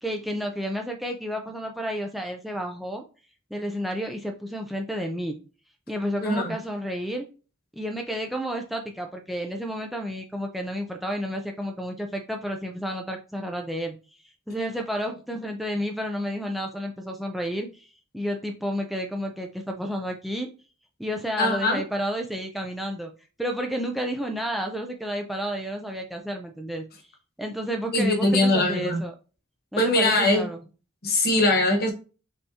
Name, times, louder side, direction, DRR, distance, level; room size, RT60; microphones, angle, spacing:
voice 1, 0.0-3.0 3.5-5.3 5.9-7.2 7.8-14.0 14.5-17.9 18.1-20.5 21.0-23.1 23.4-26.9 27.4-29.1 29.7-30.6, equal, ahead, 0.5 m, -31 dB
voice 2, 6.2-6.5 21.4-21.8 27.9-29.0 29.8-30.4 31.0-31.9, left 2 dB, 50° left, 1.2 m, -21 dB
5.3 x 3.5 x 2.8 m
head